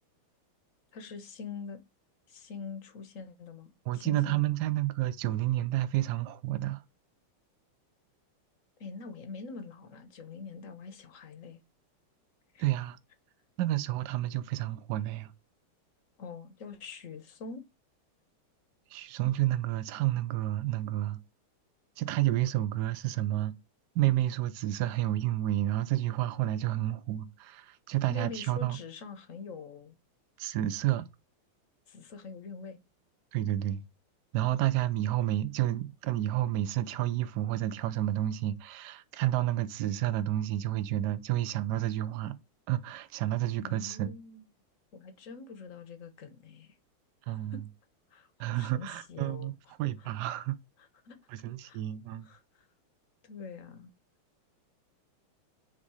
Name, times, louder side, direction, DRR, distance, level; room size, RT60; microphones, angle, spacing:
voice 1, 0.9-1.8 2.3-4.4 8.8-11.6 12.5-12.7 16.2-17.6 28.1-29.9 31.9-32.8 43.6-44.4 44.9-46.8 47.3-47.6 48.1-49.5 50.0-50.1 51.0-51.2 51.6-51.8 52.2-52.7 53.2-53.9, left 5 dB, 50° left, 1.1 m, -44 dB
voice 2, 3.9-6.8 12.6-13.0 13.6-15.3 18.9-21.2 22.0-23.5 23.9-28.8 30.4-31.1 33.3-33.8 34.3-42.4 42.7-44.1 47.3-47.6 48.4-50.6 51.3-52.3, right 14 dB, 65° right, 1.1 m, -30 dB
8.4 x 3.7 x 4.8 m
omnidirectional pair, 2.4 m